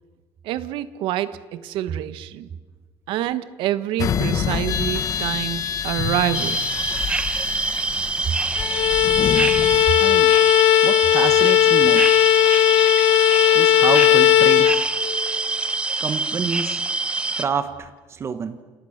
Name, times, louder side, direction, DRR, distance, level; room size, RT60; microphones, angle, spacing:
voice 1, 0.4-2.5 3.1-6.6, right 12 dB, 65° right, 13 dB, 1.4 m, -27 dB
sound 1, 4.0-9.8, left 7 dB, 40° left, 1.6 m, -27 dB
sound 2, 6.3-17.4, right 3 dB, 10° right, 1.1 m, -25 dB
Bowed string instrument, 8.5-15.3, left 14 dB, 90° left, 1.5 m, -17 dB
voice 2, 10.0-10.4 10.8-12.1 13.5-14.8 16.0-16.8 17.4-18.6, right 6 dB, 30° right, 9 dB, 1.3 m, -27 dB
29.5 x 28.5 x 6.6 m, 1.4 s
cardioid pair, 150°, 9 cm